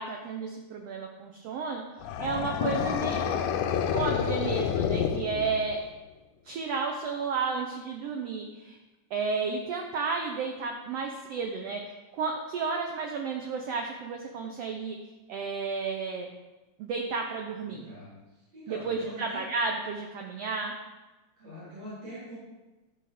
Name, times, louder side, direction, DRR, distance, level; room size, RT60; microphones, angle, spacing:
voice 1, 0.0-1.9 2.2-3.3 3.9-5.8 6.4-8.8 9.1-15.0 15.3-16.3 16.8-17.9 18.7-20.8, right 4 dB, 75° right, 2 dB, 1.5 m, -32 dB
sound 1, 2.0-5.9, left 8 dB, 80° left, 1.8 m, -29 dB
voice 2, 17.6-19.4 21.4-22.3, equal, 50° right, -11 dB, 4.6 m, -44 dB
12.5 x 4.4 x 5.0 m, 1.1 s
omnidirectional pair, 3.6 m